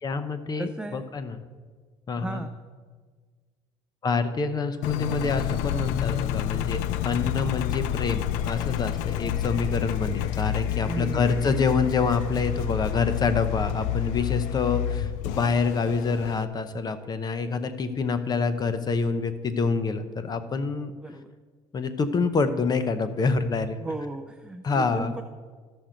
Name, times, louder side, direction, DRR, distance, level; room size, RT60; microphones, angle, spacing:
voice 1, 0.0-1.4 2.1-2.4 4.0-20.9 21.7-23.8 24.6-25.1, left 4 dB, 30° left, 10 dB, 0.8 m, -27 dB
voice 2, 0.6-1.0 2.2-2.5 10.9-11.7 21.0-21.3 23.8-25.2, right 2 dB, 10° right, 5 dB, 0.5 m, -35 dB
Engine, 4.8-16.5, left 12 dB, 80° left, 0.4 m, -29 dB
13.5 x 6.1 x 5.1 m, 1.5 s
cardioid pair, 105°, 13 cm